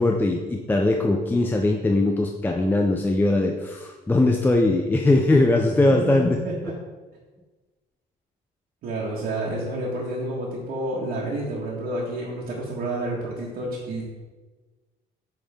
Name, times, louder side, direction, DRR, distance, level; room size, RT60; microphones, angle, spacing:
voice 1, 0.0-6.4, left 2 dB, 10° left, 2 dB, 0.5 m, -20 dB
voice 2, 5.9-6.7 8.8-14.0, right 1 dB, 65° right, -6 dB, 1.5 m, -30 dB
8.7 x 3.7 x 3.5 m, 1.3 s
cardioid pair, 110°, 17 cm